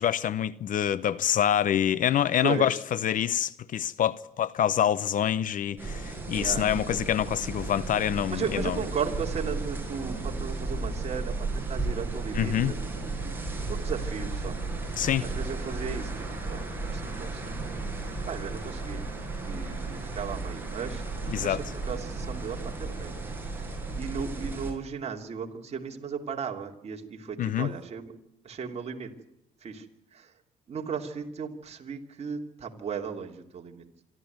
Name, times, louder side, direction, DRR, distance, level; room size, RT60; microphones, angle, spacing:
voice 1, 0.0-8.8 12.3-12.7 15.0-15.3 21.3-21.6 27.4-27.7, left 10 dB, 50° left, 0.8 m, -26 dB
voice 2, 2.4-2.8 6.3-6.7 8.3-12.8 13.7-14.6 15.2-17.6 18.3-19.1 19.5-21.0 21.4-23.1 23.4-23.6 23.9-28.1 28.4-29.1 29.6-29.9 30.1-30.3 30.7-33.8, right 6 dB, 40° right, 3.0 m, -36 dB
sound 1, 5.8-24.7, right 3 dB, 10° right, 7.0 m, -34 dB
26.5 x 12.5 x 9.4 m
cardioid pair, 110°, 17 cm